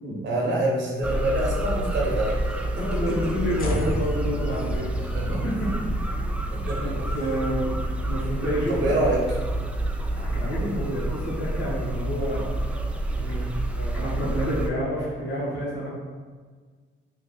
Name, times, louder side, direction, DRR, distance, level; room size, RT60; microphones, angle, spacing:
voice 1, 0.2-3.7 4.9-5.5 6.5-7.0 8.7-9.2 13.2-13.5, right 1 dB, 65° right, -2 dB, 1.0 m, -27 dB
sound 1, 1.0-14.7, right 1 dB, 5° right, 0.3 m, -29 dB
voice 2, 2.8-5.1 5.4-6.1 6.8-8.7 10.1-12.6 13.3-13.4 13.7-15.9, equal, 70° left, -6 dB, 1.3 m, -29 dB
sound 2, 3.6-9.9, left 1 dB, 45° left, 0.7 m, -36 dB
3.2 x 2.4 x 3.8 m, 1.5 s
cardioid pair, 90°, 20 cm